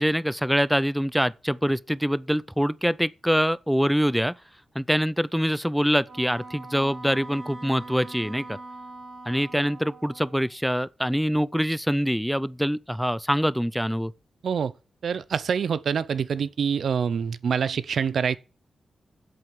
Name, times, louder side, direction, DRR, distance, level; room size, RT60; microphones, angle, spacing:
voice 1, 0.0-4.3 4.8-8.6 9.3-14.1, equal, ahead, 0.4 m, -24 dB
Wind instrument woodwind instrument, 6.0-10.5, right 2 dB, 50° right, 2.6 m, -42 dB
voice 2, 15.0-18.4, right 7 dB, 75° right, 0.6 m, -26 dB
7.9 x 7.8 x 7.3 m
wide cardioid pair, 100°, 0 cm